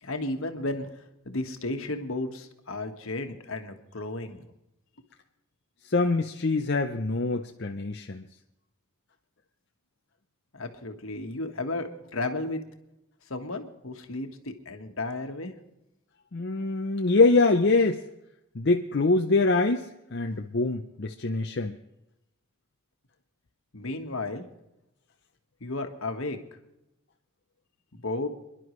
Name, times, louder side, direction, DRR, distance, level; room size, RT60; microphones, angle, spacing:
voice 1, 0.0-4.4 10.5-12.6 13.3-15.5 23.7-24.4 25.6-26.4 27.9-28.3, left 2 dB, 70° left, 5 dB, 1.5 m, -33 dB
voice 2, 5.9-8.2 16.3-18.0 18.6-21.8, left 3 dB, 50° left, 3 dB, 0.6 m, -24 dB
27.5 x 11.5 x 3.2 m, 0.88 s
head